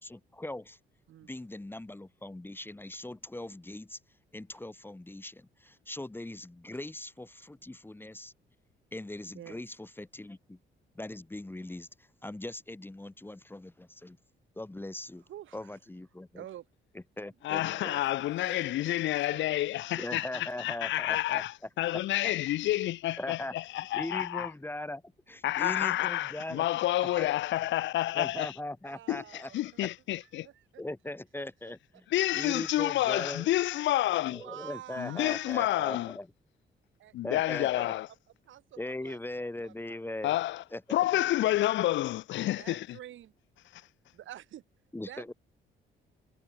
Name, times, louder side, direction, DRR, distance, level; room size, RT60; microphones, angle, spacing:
voice 1, 0.0-0.8 1.2-4.0 4.3-8.3 8.9-10.6 10.9-14.2 14.6-15.2 15.5-16.4 17.2-17.9 20.0-21.4 22.2-22.3 23.2-23.5 23.9-26.6 27.1-27.3 28.1-29.5 29.8-29.9 30.8-32.0 32.3-33.5 34.3-36.3 37.2-37.9 38.8-40.3 40.7-40.8 44.9-45.3, left 1 dB, 10° left, 1.3 m, -40 dB
voice 2, 15.3-15.8 16.3-16.7 17.2-20.5 28.9-29.6 30.2-30.7 31.4-31.7 34.2-35.7 37.0-37.1 37.5-38.0 38.4-40.3 42.6-43.3 44.1-44.6 45.1-45.3, right 12 dB, 75° right, 4.0 m, -49 dB
voice 3, 17.4-24.5 25.4-28.5 29.1-30.5 32.1-34.4 35.0-36.2 37.1-38.1 40.2-40.6 40.9-42.9 43.7-43.8, left 15 dB, 70° left, 0.4 m, -29 dB
cardioid pair, 90°, 20 cm